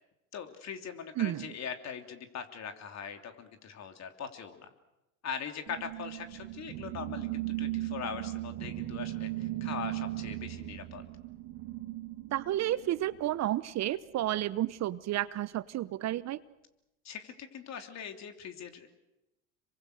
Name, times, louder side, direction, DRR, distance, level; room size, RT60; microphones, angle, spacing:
voice 1, 0.3-4.7 5.2-11.0 17.0-18.9, left 7 dB, 45° left, 6 dB, 3.2 m, -41 dB
voice 2, 1.2-1.5 12.3-16.4, right 14 dB, 45° right, 17 dB, 0.9 m, -31 dB
sound 1, 5.7-13.4, right 16 dB, 60° right, 2.6 m, -38 dB
27.5 x 24.0 x 6.6 m, 0.92 s
hypercardioid pair, 80°, 38 cm